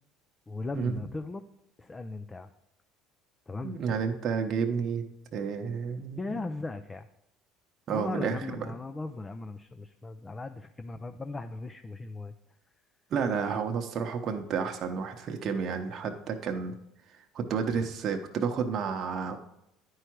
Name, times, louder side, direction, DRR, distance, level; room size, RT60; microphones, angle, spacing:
voice 1, 0.5-1.4 1.8-2.5 3.5-3.8 6.2-7.1 7.9-12.3, left 3 dB, 20° left, 8 dB, 0.4 m, -38 dB
voice 2, 3.6-5.0 5.3-6.4 7.9-8.7 13.1-16.7 17.1-19.4, right 6 dB, 50° right, 4 dB, 0.8 m, -31 dB
9.8 x 4.7 x 4.6 m, 0.83 s
hypercardioid pair, 80°, 0 cm